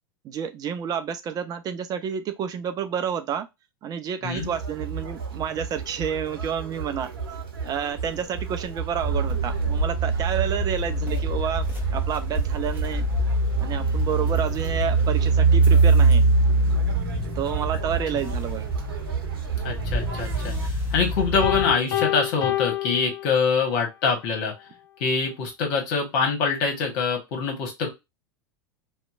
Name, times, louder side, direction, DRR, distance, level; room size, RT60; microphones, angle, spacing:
voice 1, 0.2-3.5 3.8-7.1 7.6-13.1 13.6-16.2 17.4-18.7, right 8 dB, 30° right, 0.4 m, -30 dB
Conversation, 4.3-20.7, right 5 dB, 75° right, 0.7 m, -33 dB
sound 1, 9.0-21.7, right 3 dB, 15° right, 1.2 m, -23 dB
voice 2, 19.6-20.5 20.9-24.5 25.0-27.9, left 5 dB, 55° left, 1.2 m, -24 dB
Piano, 21.4-23.8, left 14 dB, 70° left, 0.8 m, -27 dB
2.8 x 2.2 x 2.4 m
figure-of-eight pair, 85°, 12 cm